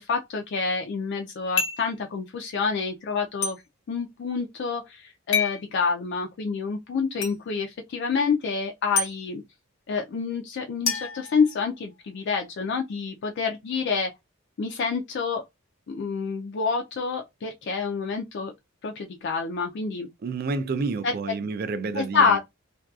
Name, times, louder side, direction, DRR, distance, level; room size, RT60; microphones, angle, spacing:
voice 1, 0.0-3.6 3.9-9.4 9.9-14.1 14.6-15.4 15.9-18.5 18.8-20.1 21.0-21.1 21.9-22.4, left 5 dB, 55° left, 0.3 m, -27 dB
sound 1, 1.6-1.9 3.4-3.6 5.3-5.6 7.2-7.3 9.0-9.1 10.9-11.9, left 5 dB, 80° left, 0.8 m, -27 dB
voice 2, 20.2-22.4, right 4 dB, 45° right, 0.3 m, -29 dB
2.6 x 2.2 x 2.3 m
head